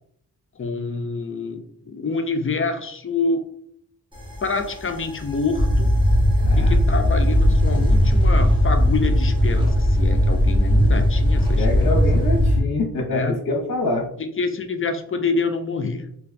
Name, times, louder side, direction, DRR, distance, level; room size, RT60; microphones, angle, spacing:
voice 1, 0.6-3.4 4.4-5.9 6.6-12.0 13.1-13.4 14.2-16.1, left 4 dB, 35° left, 6 dB, 0.4 m, -27 dB
sound 1, 4.1-12.6, equal, 15° right, 0.9 m, -18 dB
voice 2, 6.4-6.8 11.6-14.1, left 2 dB, 60° left, 0 dB, 0.8 m, -25 dB
3.3 x 2.6 x 2.5 m, 0.69 s
wide cardioid pair, 120°, 38 cm